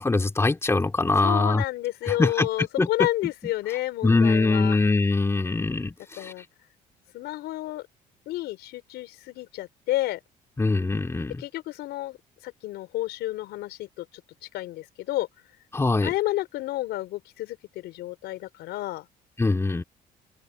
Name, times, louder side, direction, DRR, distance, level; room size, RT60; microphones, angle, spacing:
voice 1, 0.0-1.6 2.1-3.1 4.0-6.3 10.6-11.4 15.7-16.1 19.4-19.8, left 3 dB, 15° left, 2.9 m, -23 dB
voice 2, 1.2-4.8 6.2-6.4 7.1-7.8 8.3-10.2 11.4-12.2 12.4-14.1 14.5-15.3 16.0-19.1, left 16 dB, 85° left, 5.2 m, -30 dB
open air
cardioid pair, 110°, 17 cm